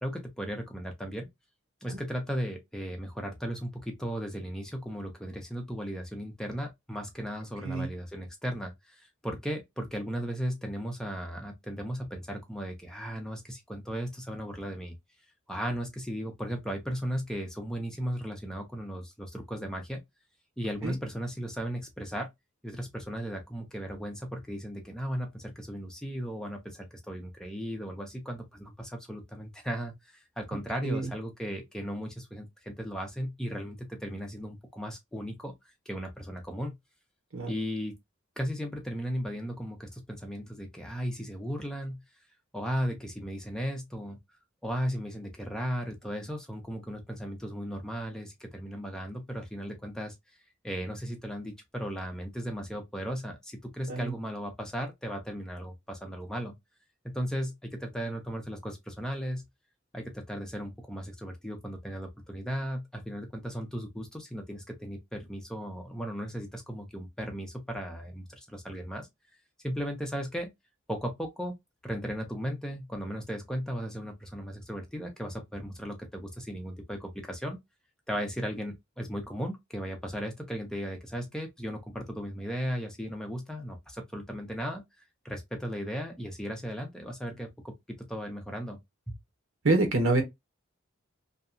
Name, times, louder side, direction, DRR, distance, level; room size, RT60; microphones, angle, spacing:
voice 1, 0.0-1.3 1.8-15.0 15.5-20.0 20.6-22.3 22.6-36.7 37.5-38.0 38.4-42.0 42.5-44.2 44.6-50.1 50.6-56.5 57.0-59.4 59.9-69.1 69.6-70.5 70.9-71.5 71.8-77.6 78.1-84.8 85.2-88.8, equal, 5° left, 0.5 m, -36 dB
voice 2, 89.6-90.2, right 2 dB, 85° right, 1.0 m, -26 dB
2.7 x 2.2 x 2.4 m
head